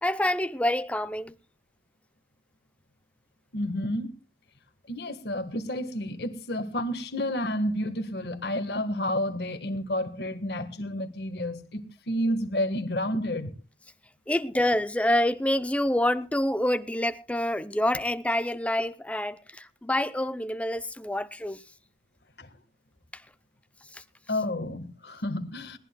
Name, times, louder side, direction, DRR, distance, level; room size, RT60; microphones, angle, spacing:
voice 1, 0.0-1.3 14.3-21.6 23.1-23.2 23.9-24.0, left 1 dB, 5° left, 0.6 m, -27 dB
voice 2, 3.5-4.1 4.9-13.5 22.4-22.5 24.3-25.8, left 1 dB, 60° left, 1.6 m, -30 dB
21.0 x 18.5 x 2.3 m
head